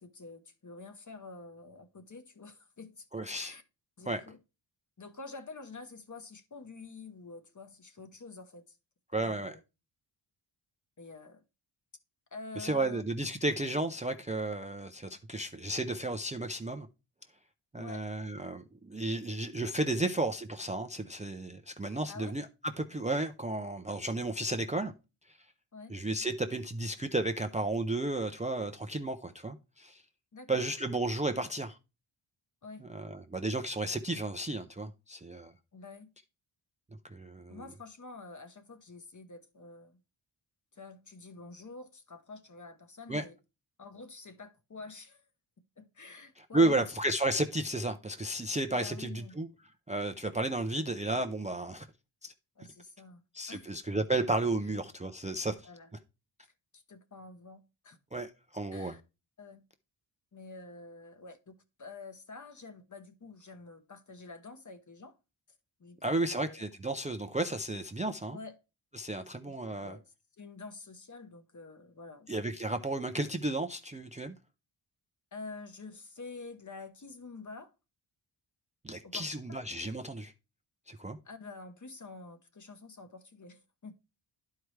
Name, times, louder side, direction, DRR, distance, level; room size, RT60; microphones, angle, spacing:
voice 1, 0.0-3.6 4.0-4.4 5.0-8.8 9.1-9.6 11.0-11.4 12.3-13.0 17.7-18.1 20.0-20.1 22.1-22.3 25.7-25.9 30.3-30.7 32.6-32.8 35.7-36.1 37.5-40.0 40.7-43.4 43.8-45.2 45.8-47.0 48.7-49.4 52.6-53.7 55.6-55.9 56.4-58.0 58.7-59.0 59.4-59.6 60.3-65.2 65.8-66.6 68.3-68.6 69.4-72.3 75.3-77.7 79.0-79.3 81.2-83.9, left 3 dB, 35° left, 1.0 m, -48 dB
voice 2, 3.1-3.5 4.1-4.2 9.1-9.5 12.6-16.9 17.7-22.5 22.8-24.9 25.3-25.4 25.9-30.0 30.5-31.8 32.8-35.5 37.0-37.6 43.1-43.2 46.4-49.5 49.9-51.9 52.2-52.3 53.3-55.7 58.1-59.0 66.0-68.4 68.9-70.0 72.3-74.4 78.8-80.3 80.9-81.2, right 2 dB, 15° right, 0.4 m, -33 dB
11.5 x 4.7 x 3.2 m
wide cardioid pair, 95°, 49 cm